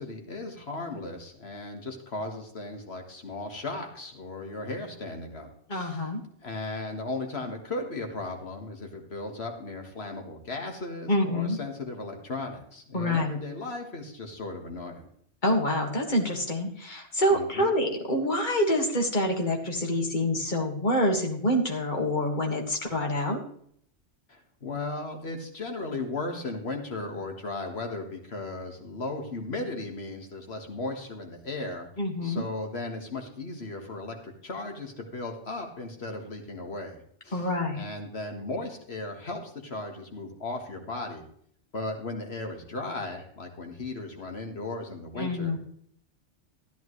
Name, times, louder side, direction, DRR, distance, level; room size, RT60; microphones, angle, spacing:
voice 1, 0.0-6.1 6.4-15.0 17.3-17.7 24.3-31.9 32.2-37.5 37.8-41.3 41.7-45.5, left 2 dB, 60° left, 3 dB, 1.8 m, -36 dB
voice 2, 5.7-6.2 11.1-11.6 12.9-13.3 15.4-23.4 32.0-32.4 37.3-37.8 45.1-45.6, left 1 dB, 40° left, 2 dB, 1.9 m, -26 dB
13.5 x 10.5 x 3.2 m, 0.65 s
omnidirectional pair, 1.2 m